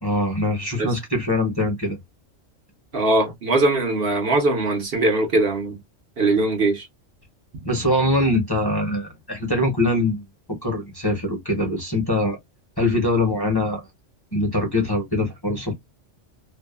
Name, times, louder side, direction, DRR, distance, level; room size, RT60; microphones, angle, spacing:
voice 1, 0.0-2.0 7.6-10.2 10.6-12.4 12.8-13.8 14.3-15.7, left 1 dB, 20° left, 0.8 m, -23 dB
voice 2, 2.9-5.8 6.2-6.9, right 2 dB, 55° right, 1.1 m, -21 dB
2.6 x 2.2 x 2.2 m
omnidirectional pair, 1.3 m